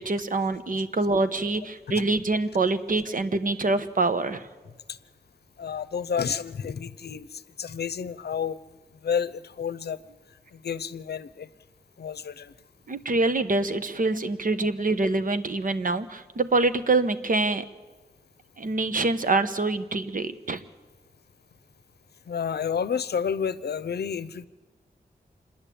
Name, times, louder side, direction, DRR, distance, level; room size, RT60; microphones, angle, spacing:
voice 1, 0.0-4.4 12.9-17.6 18.6-20.6, right 3 dB, 55° right, 10 dB, 1.2 m, -25 dB
voice 2, 5.6-8.6 9.0-10.0 10.5-11.5 12.0-12.5 22.3-24.5, left 7 dB, 85° left, 15 dB, 0.7 m, -30 dB
28.0 x 10.5 x 8.6 m, 1.3 s
wide cardioid pair, 85°, 16 cm